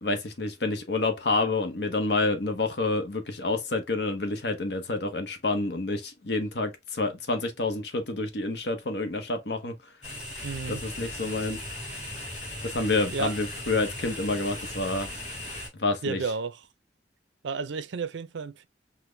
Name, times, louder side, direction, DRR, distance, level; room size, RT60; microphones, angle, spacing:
voice 1, 0.0-9.7 10.7-11.6 12.6-15.1 15.8-16.2, left 3 dB, 65° left, 0.9 m, -28 dB
sound 1, 10.0-15.7, left 1 dB, 40° left, 2.7 m, -38 dB
voice 2, 10.4-10.8 13.1-13.4 16.0-16.6 17.4-18.7, right 4 dB, 80° right, 0.5 m, -32 dB
5.9 x 2.1 x 3.2 m
head